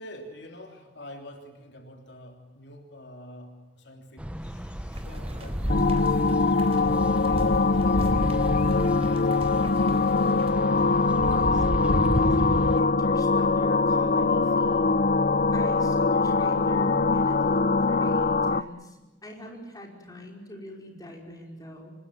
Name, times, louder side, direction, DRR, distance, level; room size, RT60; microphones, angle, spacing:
voice 1, 0.0-8.4 8.8-9.9 10.7-10.8, equal, 65° left, 4 dB, 3.2 m, -47 dB
sound 1, 4.2-12.8, equal, 5° right, 1.0 m, -31 dB
sound 2, 4.9-10.5, right 1 dB, 35° right, 3.9 m, -42 dB
sound 3, 5.7-18.6, left 3 dB, 50° left, 0.8 m, -23 dB
voice 2, 11.3-15.0 15.5-19.0 19.2-21.9, left 1 dB, 20° left, 1 dB, 5.3 m, -43 dB
26.0 x 20.0 x 9.1 m, 1.1 s
head